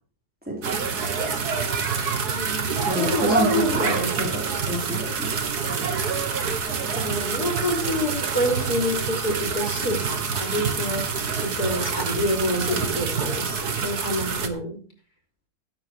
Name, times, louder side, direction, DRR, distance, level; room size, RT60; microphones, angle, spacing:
voice 1, 0.5-0.8 2.8-5.3 5.6-5.7, equal, 5° right, -4 dB, 4.7 m, -28 dB
sound 1, 0.6-14.5, right 5 dB, 90° right, 2.2 m, -27 dB
voice 2, 2.3-4.2 6.9-14.8, equal, 75° left, 2 dB, 4.3 m, -28 dB
17.0 x 8.4 x 4.9 m, 0.40 s
omnidirectional pair, 1.6 m